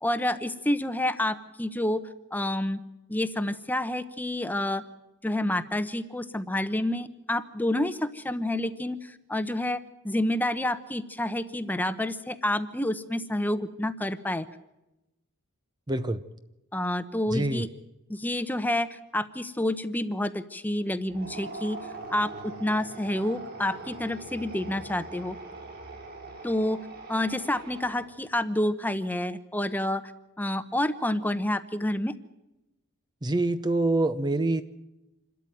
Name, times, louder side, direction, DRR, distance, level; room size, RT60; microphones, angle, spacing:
voice 1, 0.0-2.0 2.3-2.8 3.1-4.8 5.2-14.5 16.7-17.7 18.1-21.8 22.1-25.4 26.4-26.8 27.1-30.1 30.4-32.1, left 1 dB, 10° left, 11 dB, 0.9 m, -29 dB
voice 2, 15.9-16.2 17.3-17.6 33.2-34.6, right 2 dB, 20° right, 11 dB, 0.7 m, -25 dB
sound 1, 21.1-28.2, right 3 dB, 45° right, 5.9 m, -42 dB
27.0 x 13.0 x 9.2 m, 0.95 s
head